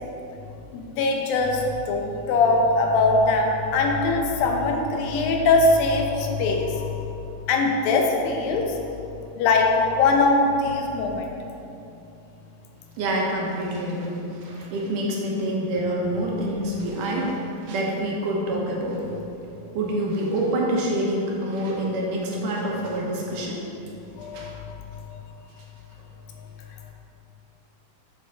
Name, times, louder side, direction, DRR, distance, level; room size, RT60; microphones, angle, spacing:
voice 1, 0.7-7.0 7.5-8.6 9.4-11.3 24.2-24.8, left 3 dB, 85° left, 2 dB, 2.6 m, -21 dB
voice 2, 13.0-19.0 19.8-23.6 24.3-24.5, right 1 dB, 75° right, -3 dB, 2.4 m, -26 dB
7.3 x 7.3 x 4.0 m, 2.7 s
omnidirectional pair, 4.1 m